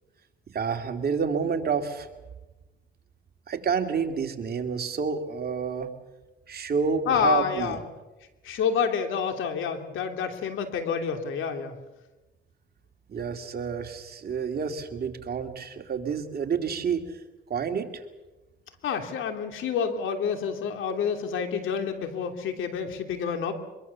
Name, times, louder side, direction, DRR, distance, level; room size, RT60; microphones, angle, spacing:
voice 1, 0.5-2.1 3.5-5.9 6.5-7.8 13.1-17.0 17.5-18.0, right 6 dB, 50° right, 5 dB, 2.7 m, -29 dB
voice 2, 7.1-7.8 8.4-11.7 18.8-23.5, left 7 dB, 80° left, 6 dB, 3.1 m, -28 dB
24.0 x 23.5 x 7.1 m, 1.1 s
cardioid pair, 90°, 20 cm